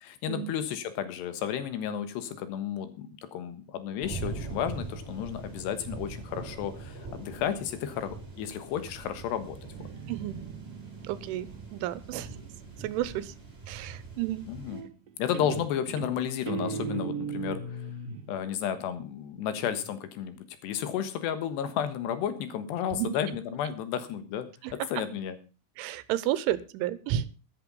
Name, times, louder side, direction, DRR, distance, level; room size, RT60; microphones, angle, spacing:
voice 1, 0.0-9.6 14.5-14.8 15.2-17.8 18.3-24.5 24.9-25.4, left 9 dB, 70° left, 11 dB, 3.2 m, -32 dB
sound 1, 4.0-14.8, right 4 dB, 15° right, 4.0 m, -42 dB
Guitar, 9.6-13.2 14.7-15.1 15.3-18.3, right 5 dB, 65° right, 2.3 m, -38 dB
voice 2, 10.1-10.4 11.0-12.3 12.8-13.3 13.7-14.5 22.9-23.2 24.6-25.0 25.8-27.3, right 13 dB, 85° right, 17 dB, 3.2 m, -32 dB
13.0 x 11.0 x 5.4 m, 0.33 s
omnidirectional pair, 5.5 m